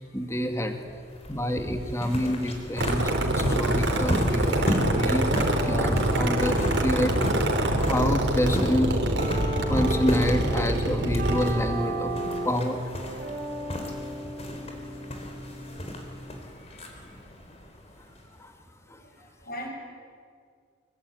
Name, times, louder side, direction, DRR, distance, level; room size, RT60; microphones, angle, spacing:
voice 1, 0.1-0.8 1.3-5.3 5.6-7.1 7.7-8.9 9.7-12.1 12.4-12.9 18.4-18.5 18.9-19.0, equal, 15° left, 6 dB, 2.2 m, -28 dB
sound 1, 0.8-18.4, left 1 dB, 35° left, 4.1 m, -35 dB
sound 2, 2.8-11.5, right 1 dB, 65° right, 4.0 m, -25 dB
sound 3, 3.6-16.3, right 2 dB, 50° right, 5.2 m, -36 dB
voice 2, 16.4-17.1 19.0-19.7, equal, 50° left, 1 dB, 7.8 m, -42 dB
26.0 x 22.5 x 9.5 m, 2.1 s
head